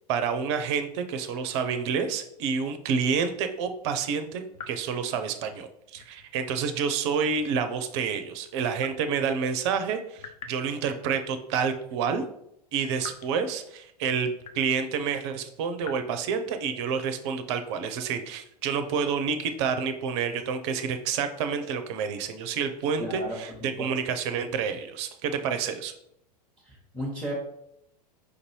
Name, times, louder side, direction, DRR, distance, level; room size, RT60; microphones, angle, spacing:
voice 1, 0.1-12.2 12.7-25.9, right 6 dB, 45° right, 9 dB, 0.5 m, -29 dB
sound 1, 3.1-3.4 4.5-4.9 6.0-6.3 7.4-7.8 8.8-9.1 10.2-10.7 11.6-11.9 13.0-13.3 14.4-14.8 15.8-16.0, left 5 dB, 65° left, 0.5 m, -44 dB
voice 2, 23.0-23.9 26.6-27.3, equal, 5° left, -3 dB, 0.9 m, -35 dB
4.9 x 2.6 x 3.0 m, 0.76 s
figure-of-eight pair, 90°, 21 cm